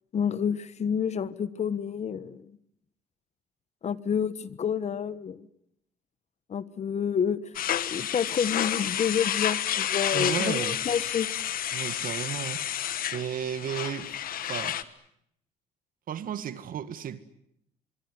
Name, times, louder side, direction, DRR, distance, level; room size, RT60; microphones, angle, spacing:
voice 1, 0.1-2.4 3.8-5.5 6.5-7.4 7.9-11.3, left 7 dB, 40° left, 1.3 m, -29 dB
sound 1, 7.5-14.8, left 10 dB, 60° left, 1.4 m, -30 dB
voice 2, 10.1-10.8 11.7-12.6 13.1-14.8 16.1-17.2, right 9 dB, 55° right, 2.0 m, -34 dB
24.0 x 24.0 x 9.6 m
cardioid pair, 110°, 17 cm